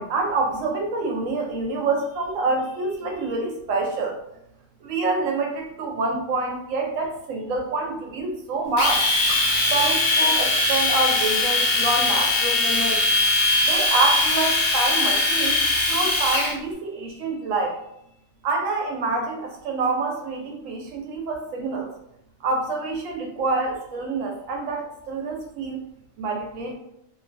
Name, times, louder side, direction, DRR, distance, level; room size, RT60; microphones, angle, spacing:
voice 1, 0.0-4.2 4.8-9.1 9.7-13.0 13.6-15.6 15.9-17.8 18.4-21.9 22.4-25.8 26.2-26.8, right 3 dB, 90° right, 1 dB, 1.0 m, -26 dB
Domestic sounds home sounds, 8.8-16.5, left 2 dB, 70° left, 1.0 m, -21 dB
2.7 x 2.2 x 2.5 m, 0.79 s
omnidirectional pair, 1.3 m